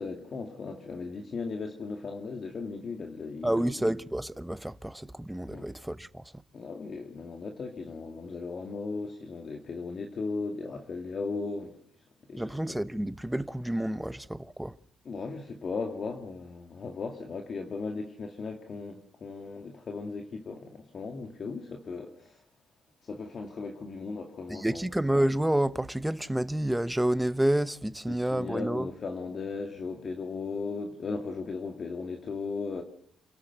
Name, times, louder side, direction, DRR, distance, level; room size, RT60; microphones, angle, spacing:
voice 1, 0.0-3.8 5.5-5.7 6.5-11.8 12.3-12.8 15.0-22.4 23.0-24.9 28.1-32.8, left 4 dB, 45° left, 2.2 m, -37 dB
voice 2, 3.4-6.2 12.3-14.7 24.5-28.9, right 1 dB, 5° right, 0.9 m, -29 dB
28.5 x 13.0 x 8.0 m
cardioid pair, 90°, 0 cm